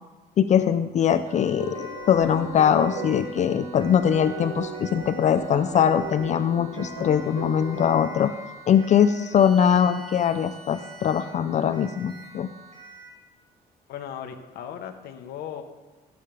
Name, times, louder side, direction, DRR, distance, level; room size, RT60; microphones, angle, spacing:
voice 1, 0.4-8.3 8.7-12.5, left 8 dB, 45° left, 11 dB, 0.5 m, -22 dB
Siren, 1.3-13.2, right 4 dB, 45° right, 3.8 m, -47 dB
sound 1, 1.6-3.4 4.1-6.0 6.7-8.6 9.4-11.3 12.1-12.3, left 3 dB, 5° left, 3.4 m, -44 dB
sound 2, 1.6-7.9, right 3 dB, 75° right, 4.0 m, -36 dB
voice 2, 13.9-15.6, left 9 dB, 75° left, 5 dB, 1.1 m, -37 dB
15.0 x 8.5 x 3.4 m, 1.2 s
cardioid pair, 110°, 17 cm